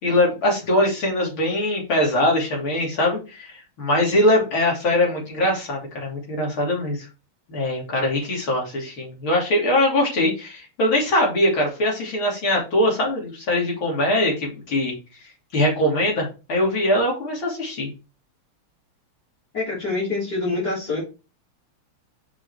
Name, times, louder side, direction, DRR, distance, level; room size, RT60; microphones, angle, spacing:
voice 1, 0.0-7.1 7.5-14.9 15.5-17.9, left 1 dB, 70° left, -2 dB, 3.8 m, -22 dB
voice 2, 19.5-21.0, left 3 dB, 50° left, -7 dB, 4.0 m, -25 dB
6.1 x 5.1 x 4.7 m, 0.31 s
omnidirectional pair, 2.4 m